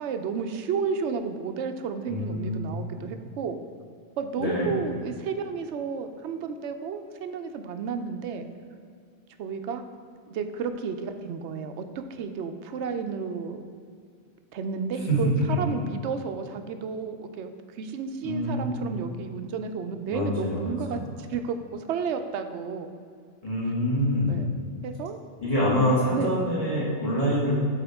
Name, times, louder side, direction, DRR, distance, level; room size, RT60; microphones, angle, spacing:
voice 1, 0.0-3.6 4.2-8.5 9.4-9.8 10.3-11.9 12.1-13.6 14.5-17.5 17.8-22.9 24.3-24.5 24.8-25.2 26.1-26.3, right 6 dB, 70° right, 7 dB, 0.8 m, -32 dB
voice 2, 2.1-2.6 2.9-3.0 4.4-4.7 15.1-15.2 18.2-18.7 20.1-21.0 23.4-24.3 25.4-27.5, equal, 30° left, -7 dB, 1.9 m, -26 dB
12.0 x 4.3 x 3.5 m, 2.2 s
omnidirectional pair, 1.3 m